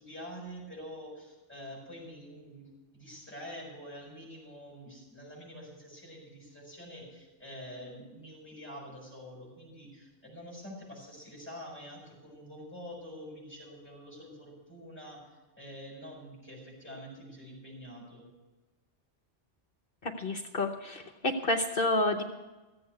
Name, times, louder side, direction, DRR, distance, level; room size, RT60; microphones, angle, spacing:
voice 1, 0.0-2.7 2.9-15.3 15.6-18.3, equal, 10° left, -3 dB, 6.8 m, -46 dB
voice 2, 20.0-22.2, left 2 dB, 55° left, 6 dB, 1.1 m, -29 dB
15.0 x 8.6 x 8.1 m, 1.1 s
omnidirectional pair, 1.2 m